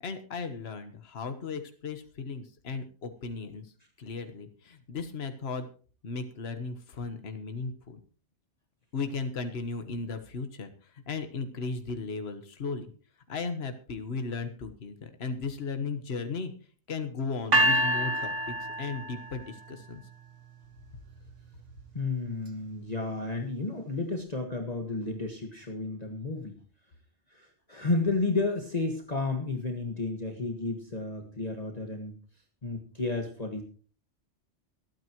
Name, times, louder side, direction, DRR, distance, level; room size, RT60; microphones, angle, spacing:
voice 1, 0.0-3.7 4.0-5.7 6.0-8.0 8.9-12.9 13.3-16.5 16.9-18.3 18.6-20.0, left 4 dB, 60° left, 8 dB, 1.5 m, -36 dB
sound 1, 17.5-19.6, right 1 dB, 90° right, 2.1 m, -26 dB
voice 2, 21.9-26.6 27.3-32.1 32.6-33.6, left 3 dB, 35° left, 2 dB, 1.7 m, -32 dB
25.0 x 9.3 x 3.0 m, 0.40 s
omnidirectional pair, 1.2 m